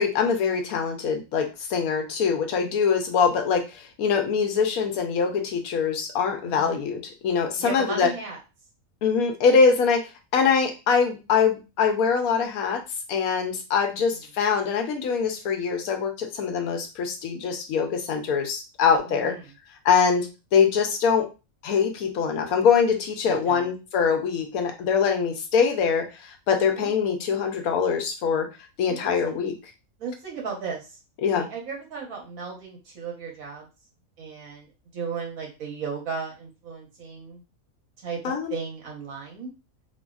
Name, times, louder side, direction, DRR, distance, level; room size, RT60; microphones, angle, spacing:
voice 1, 0.0-8.1 9.0-12.8 13.1-19.3 19.8-21.3 21.6-28.5 28.8-29.5 31.2-31.5 38.2-38.5, left 6 dB, 90° left, 5 dB, 1.1 m, -23 dB
voice 2, 6.4-6.8 7.6-8.4 14.0-14.1 19.1-19.5 23.3-23.7 26.7-26.9 28.9-29.3 30.0-31.0 31.3-33.7 34.2-37.4 38.0-39.5, right 5 dB, 75° right, -1 dB, 1.4 m, -35 dB
3.3 x 2.2 x 2.3 m, 0.29 s
omnidirectional pair, 1.5 m